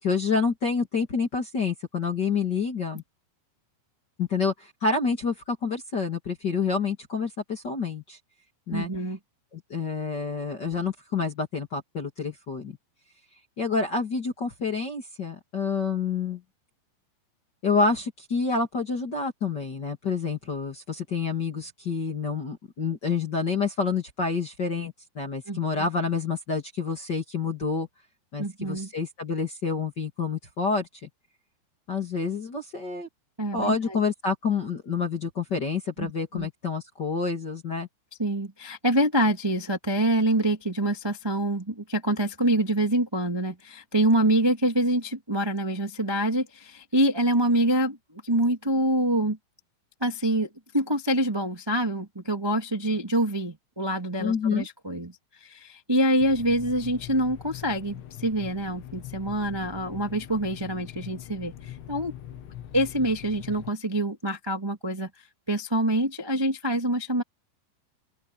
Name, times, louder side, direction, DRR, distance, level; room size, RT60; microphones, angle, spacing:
voice 1, 0.0-3.0 4.2-8.2 8.7-8.9 9.5-12.7 13.6-16.4 17.6-27.9 28.3-31.1 31.9-33.1 33.5-37.9 54.2-54.6, left 4 dB, 35° left, 1.9 m, -28 dB
voice 2, 8.7-9.2 25.5-25.9 28.4-28.9 33.4-34.0 36.0-36.5 38.2-48.0 48.2-49.4 50.0-50.5 50.7-62.1 62.7-65.1 65.5-67.2, right 1 dB, 10° right, 1.1 m, -26 dB
sound 1, 56.2-63.7, left 11 dB, 85° left, 4.3 m, -42 dB
open air
omnidirectional pair, 5.2 m